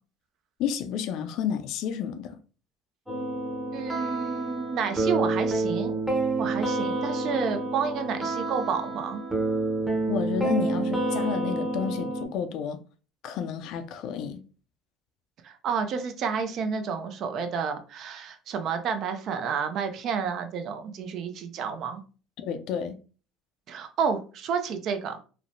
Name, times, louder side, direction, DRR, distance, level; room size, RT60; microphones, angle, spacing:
voice 1, 0.6-2.4 10.1-12.8 13.2-14.4 22.4-23.0, left 8 dB, 70° left, 0.4 m, -31 dB
sound 1, 3.1-12.3, right 2 dB, 5° right, 0.7 m, -28 dB
voice 2, 3.7-5.9 6.4-9.2 15.4-22.0 23.7-25.2, right 6 dB, 60° right, 0.4 m, -30 dB
2.9 x 2.1 x 2.5 m
supercardioid pair, 90°, 0 cm